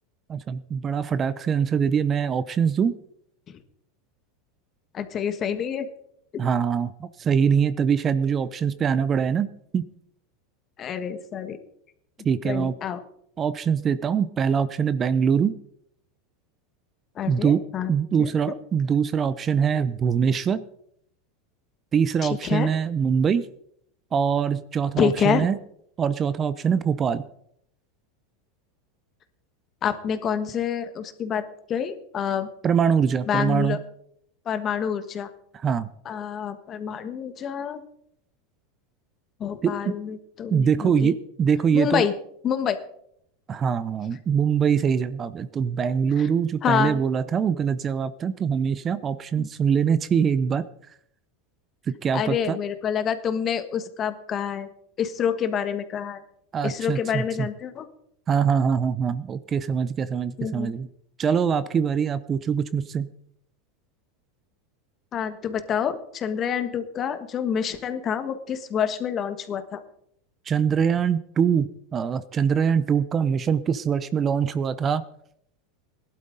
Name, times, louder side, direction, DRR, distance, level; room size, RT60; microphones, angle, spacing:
voice 1, 0.3-3.0 6.4-9.9 12.2-12.7 13.4-15.5 17.3-17.6 17.9-20.6 21.9-23.5 24.1-25.6 26.0-27.2 32.6-33.8 35.6-35.9 39.6-39.9 40.5-42.1 43.5-50.6 52.0-52.6 56.5-57.5 58.3-60.9 61.2-63.1 70.5-75.0, right 7 dB, 30° right, 15 dB, 0.6 m, -23 dB
voice 2, 4.9-5.9 6.3-6.4 10.8-11.6 12.4-13.0 17.1-17.9 18.2-18.3 22.2-22.7 25.0-25.5 29.8-32.5 33.3-33.8 34.4-35.3 36.0-37.8 39.4-41.1 41.7-42.1 42.4-42.8 46.2-46.3 46.6-47.0 49.4-49.5 52.1-54.7 55.0-56.2 56.6-57.9 60.4-60.7 65.1-69.8, left 8 dB, 35° left, 10 dB, 1.4 m, -27 dB
17.5 x 12.0 x 4.0 m, 0.71 s
hypercardioid pair, 115°, 0 cm